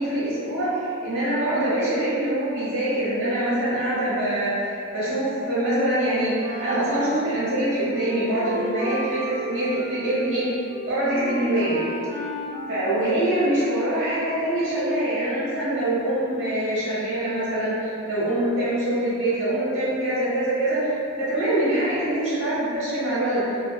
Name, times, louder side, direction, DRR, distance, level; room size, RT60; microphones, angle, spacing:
voice 1, 0.0-10.5 10.8-11.9 12.7-23.6, right 1 dB, 55° right, -11 dB, 1.0 m, -24 dB
Wind instrument woodwind instrument, 6.4-13.6, equal, 10° right, 0.5 m, -36 dB
2.4 x 2.2 x 2.3 m, 2.6 s
head